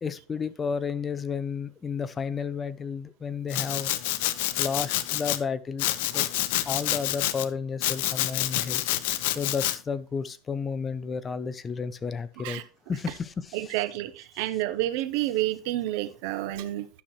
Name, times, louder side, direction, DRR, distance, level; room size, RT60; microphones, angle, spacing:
voice 1, 0.0-3.9 4.6-6.3 6.7-8.8 9.3-12.6 12.9-13.7, left 6 dB, 25° left, 14 dB, 0.7 m, -32 dB
Domestic sounds home sounds, 3.5-5.4 5.8-7.4 7.8-9.8, left 14 dB, 80° left, 0.7 m, -28 dB
voice 2, 13.5-16.9, right 15 dB, 75° right, 13 dB, 0.9 m, -29 dB
11.5 x 5.9 x 3.2 m, 0.36 s
supercardioid pair, 125°, 0 cm